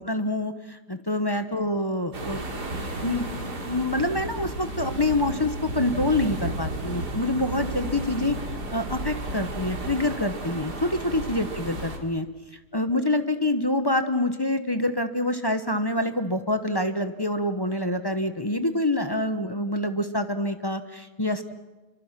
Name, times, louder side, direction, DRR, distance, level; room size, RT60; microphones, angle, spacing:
voice 1, 0.0-2.4 2.8-3.3 3.6-8.4 8.7-12.3 12.7-21.5, left 1 dB, 20° left, 8 dB, 0.8 m, -26 dB
sound 1, 2.1-12.0, right 1 dB, 70° right, 3.3 m, -33 dB
27.5 x 24.0 x 5.9 m, 1.2 s
omnidirectional pair, 1.8 m